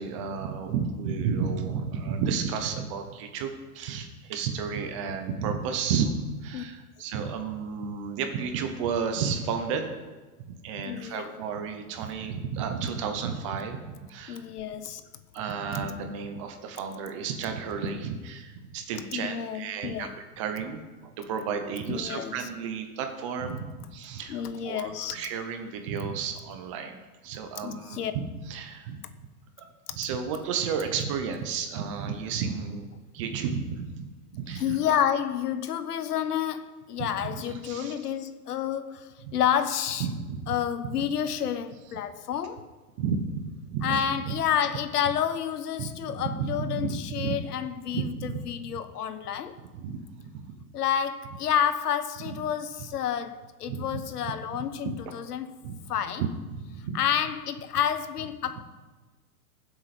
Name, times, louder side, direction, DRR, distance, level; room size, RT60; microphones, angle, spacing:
voice 1, 0.0-9.9 10.5-14.4 15.3-29.0 29.9-32.9 33.1-34.1 34.3-34.8 37.0-37.9 39.2-39.3 40.0-40.5 43.0-44.3 45.8-47.4 47.9-48.4 49.7-50.5 52.2-52.4 53.7-54.0 54.8-55.0 55.6-55.8 56.2-57.0, right 6 dB, 20° right, 0.7 m, -32 dB
voice 2, 10.8-11.3 14.3-15.0 19.1-20.2 21.9-22.5 24.3-25.2 27.6-28.1 34.5-40.1 40.5-42.7 43.8-49.6 50.7-55.6 55.9-56.2 56.9-58.6, left 9 dB, 85° left, 1.1 m, -29 dB
19.5 x 7.8 x 4.2 m
supercardioid pair, 170°, 45 cm